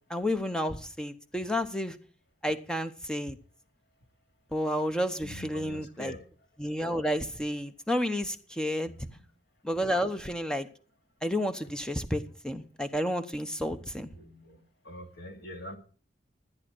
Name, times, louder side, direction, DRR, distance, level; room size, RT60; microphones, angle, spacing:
voice 1, 0.1-2.0 2.4-3.4 4.5-6.1 6.6-8.9 9.6-10.7 11.2-14.1, equal, 5° left, 0.9 m, -31 dB
voice 2, 5.2-6.2 8.8-9.2 13.8-15.8, left 1 dB, 55° left, 2.6 m, -45 dB
14.0 x 9.9 x 6.1 m
head